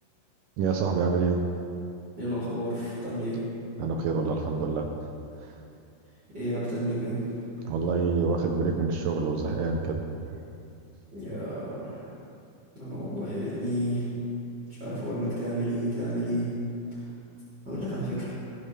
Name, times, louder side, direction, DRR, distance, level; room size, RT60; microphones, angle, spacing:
voice 1, 0.6-1.4 3.8-4.9 5.4-5.5 7.7-10.0, right 4 dB, 75° right, 3 dB, 2.1 m, -27 dB
voice 2, 2.2-3.4 6.3-7.2 11.1-12.1 12.7-14.2 14.8-16.6 16.9-17.0 17.6-18.4, equal, 30° right, -10 dB, 3.8 m, -31 dB
19.5 x 11.0 x 3.3 m, 2.6 s
omnidirectional pair, 4.3 m